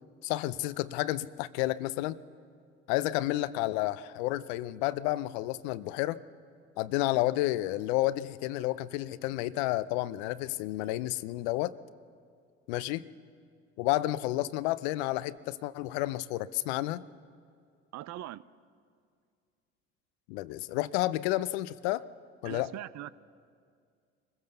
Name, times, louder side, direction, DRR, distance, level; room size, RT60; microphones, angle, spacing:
voice 1, 0.2-2.2 2.9-6.2 6.8-11.7 12.7-13.0 13.8-17.0 20.3-22.0 22.4-22.7, left 16 dB, 75° left, 17 dB, 0.7 m, -31 dB
voice 2, 17.9-18.4 22.4-23.1, right 14 dB, 55° right, 17 dB, 0.7 m, -41 dB
25.0 x 15.5 x 6.8 m, 2.2 s
hypercardioid pair, 65°, 32 cm